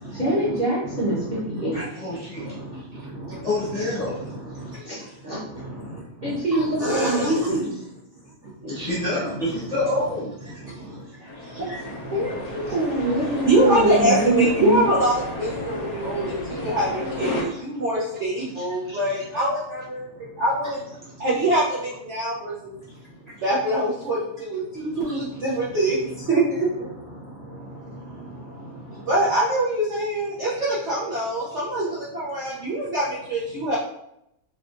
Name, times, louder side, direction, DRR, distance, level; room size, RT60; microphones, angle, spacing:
voice 1, 0.1-1.8 4.8-5.4 6.2-7.8 8.6-8.7 11.2-11.3 11.6-11.7 12.1-14.8, right 1 dB, 35° right, -8 dB, 0.7 m, -25 dB
voice 2, 0.9-1.8 2.1-3.5 4.1-4.8 5.5-6.4 6.8-7.4 8.4-8.9 10.6-11.1 11.4-12.4 13.5-20.9 21.1-22.8 23.4-33.8, right 1 dB, 80° right, -8 dB, 0.6 m, -25 dB
voice 3, 1.7-2.6 3.4-4.2 6.5-6.6 7.2-7.3 8.7-10.5 17.5-17.6 18.5-19.2 25.0-25.1, left 2 dB, 25° left, -9 dB, 0.9 m, -28 dB
sound 1, 11.3-17.4, left 1 dB, 65° left, 0.9 m, -32 dB
5.5 x 2.4 x 2.5 m, 0.79 s
omnidirectional pair, 2.3 m